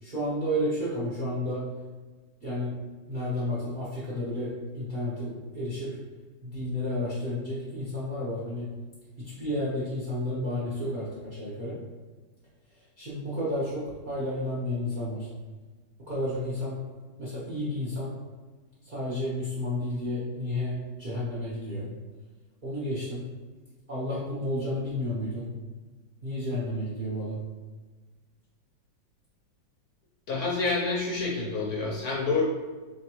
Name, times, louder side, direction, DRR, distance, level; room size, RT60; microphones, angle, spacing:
voice 1, 0.0-1.6 2.4-2.8 3.1-5.9 6.4-8.7 9.2-11.8 13.0-15.3 16.1-16.8 17.2-18.1 18.8-21.9 22.6-23.2 23.9-25.5 26.2-27.4, left 1 dB, 35° right, -8 dB, 0.8 m, -31 dB
voice 2, 30.3-32.4, left 4 dB, 60° left, -4 dB, 1.0 m, -28 dB
3.9 x 3.3 x 3.0 m, 1.3 s
omnidirectional pair, 2.1 m